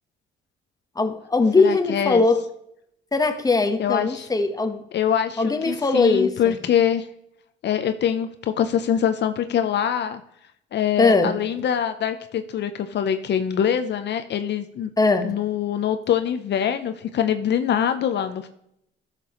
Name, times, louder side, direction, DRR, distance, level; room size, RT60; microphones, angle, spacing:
voice 1, 1.0-2.4 3.1-4.8 5.4-6.6 11.0-11.4 15.0-15.3, left 3 dB, 20° left, 7 dB, 1.1 m, -20 dB
voice 2, 1.6-2.2 3.8-4.3 4.9-7.1 7.6-10.2 10.7-14.9 15.2-18.5, left 9 dB, 60° left, 9 dB, 0.6 m, -24 dB
12.5 x 6.8 x 3.0 m, 0.77 s
cardioid pair, 90°, 20 cm